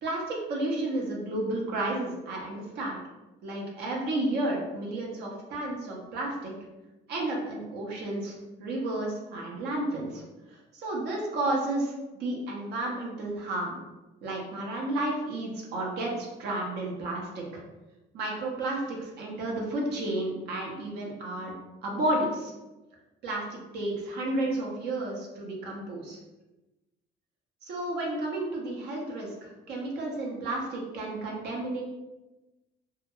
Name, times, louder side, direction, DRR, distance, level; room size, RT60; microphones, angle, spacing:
voice 1, 0.0-3.0 3.4-6.5 7.1-8.3 8.6-10.2 10.7-11.9 12.2-13.8 14.2-17.6 18.1-21.5 21.8-22.5 23.2-26.2 27.6-31.8, right 1 dB, 75° right, -2 dB, 0.6 m, -32 dB
2.3 x 2.1 x 2.9 m, 1.1 s
cardioid pair, 110°, 17 cm